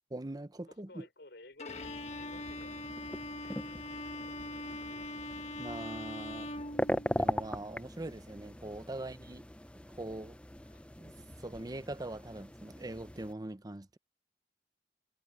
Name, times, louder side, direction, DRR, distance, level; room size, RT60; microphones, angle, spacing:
voice 1, 0.1-1.1 5.6-6.5 7.2-9.5 10.0-10.4 11.0-11.1 11.4-14.0, right 2 dB, 20° right, 0.8 m, -42 dB
voice 2, 0.7-2.8 3.4-5.1 9.0-9.2 10.6-10.9, left 2 dB, 70° left, 5.3 m, -57 dB
Bowed string instrument, 1.6-7.5, left 2 dB, 40° left, 1.8 m, -42 dB
sound 1, 1.7-13.3, left 1 dB, 5° left, 0.8 m, -40 dB
head